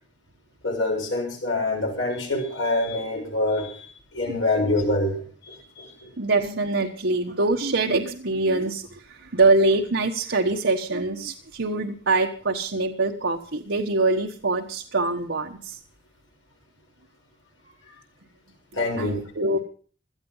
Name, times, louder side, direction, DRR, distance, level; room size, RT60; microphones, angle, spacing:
voice 1, 0.6-3.9 4.1-6.1 17.9-18.0 18.7-19.2, left 2 dB, 90° left, -3 dB, 6.9 m, -26 dB
voice 2, 6.2-15.8 19.0-19.6, right 3 dB, 75° right, 1 dB, 1.3 m, -24 dB
17.5 x 13.0 x 5.6 m, 0.41 s
head